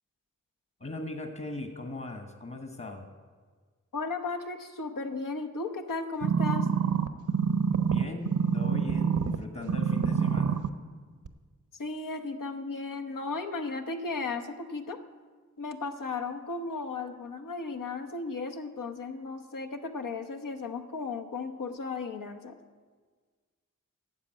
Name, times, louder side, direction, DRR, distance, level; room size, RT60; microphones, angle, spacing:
voice 1, 0.8-3.1 7.9-10.6, left 2 dB, 40° left, 5 dB, 1.4 m, -39 dB
voice 2, 3.9-6.7 11.8-15.0 15.6-22.6, left 3 dB, 80° left, 5 dB, 1.0 m, -35 dB
sound 1, 6.2-9.4 9.7-10.7 11.3-11.4, right 6 dB, 70° right, 0.8 m, -26 dB
10.5 x 7.2 x 9.0 m, 1.5 s
cardioid pair, 45°, 32 cm